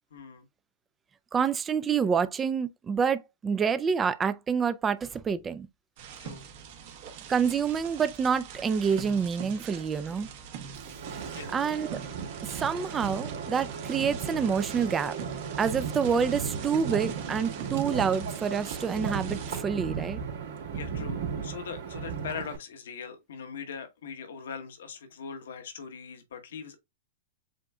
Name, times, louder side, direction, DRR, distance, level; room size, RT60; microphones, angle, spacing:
voice 1, 0.1-0.4 6.2-6.4 11.3-11.5 20.7-26.8, left 6 dB, 80° left, 1.1 m, -41 dB
voice 2, 1.3-5.7 7.3-10.3 11.5-12.0 12.4-15.2 15.6-20.2, right 6 dB, 20° right, 0.3 m, -27 dB
sound 1, 6.0-19.6, right 7 dB, 55° right, 1.1 m, -44 dB
Wind, 10.7-22.6, right 6 dB, 70° right, 2.3 m, -35 dB
7.5 x 2.5 x 2.3 m
hypercardioid pair, 135°, 0 cm